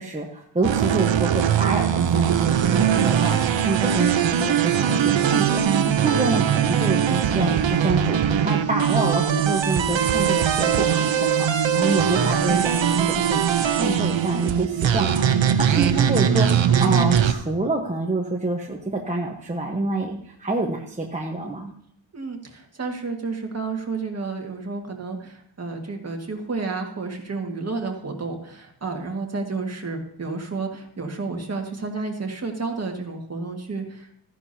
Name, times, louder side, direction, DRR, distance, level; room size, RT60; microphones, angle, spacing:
voice 1, 0.0-11.5 11.7-21.7, right 2 dB, 15° right, -1 dB, 1.1 m, -27 dB
sound 1, 0.6-17.3, right 8 dB, 75° right, 0.9 m, -21 dB
voice 2, 22.1-34.2, right 3 dB, 35° right, 2 dB, 1.9 m, -31 dB
14.5 x 10.5 x 2.8 m, 0.72 s
wide cardioid pair, 145°, 45 cm